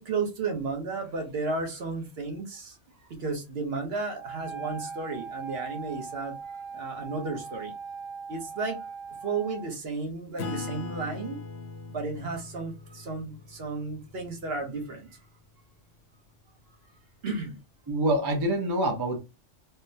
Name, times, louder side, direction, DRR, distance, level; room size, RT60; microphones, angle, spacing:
voice 1, 0.0-2.8 3.1-6.4 6.7-7.7 8.3-8.8 9.2-11.4 11.9-15.2 17.2-17.6, right 4 dB, 60° right, 1.0 m, -33 dB
Wind instrument woodwind instrument, 4.1-9.7, right 5 dB, 35° left, 0.8 m, -40 dB
Acoustic guitar / Strum, 10.4-15.4, left 4 dB, 70° left, 0.8 m, -41 dB
voice 2, 17.9-19.2, right 1 dB, 30° right, 0.5 m, -26 dB
3.7 x 2.0 x 2.6 m
omnidirectional pair, 1.2 m